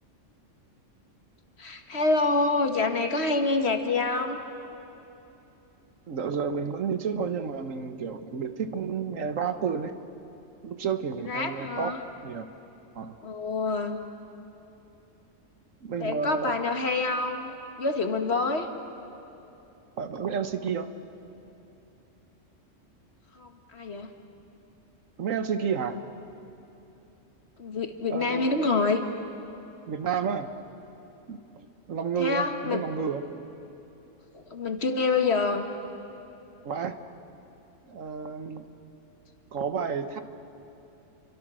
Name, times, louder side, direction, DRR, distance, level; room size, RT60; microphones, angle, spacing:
voice 1, 1.6-4.4 11.3-12.0 13.2-14.0 16.0-18.7 23.3-24.1 27.6-29.0 32.2-32.8 34.3-35.6, left 3 dB, 55° left, 5 dB, 1.8 m, -27 dB
voice 2, 6.1-9.9 10.6-11.9 12.2-12.5 12.9-13.2 15.8-16.5 20.0-20.9 25.2-26.0 28.1-28.7 29.9-30.5 31.3-33.2 36.6-37.0 37.9-38.7 39.5-40.2, right 6 dB, 80° right, 9 dB, 1.6 m, -31 dB
30.0 x 24.0 x 6.3 m, 3.0 s
omnidirectional pair, 1.3 m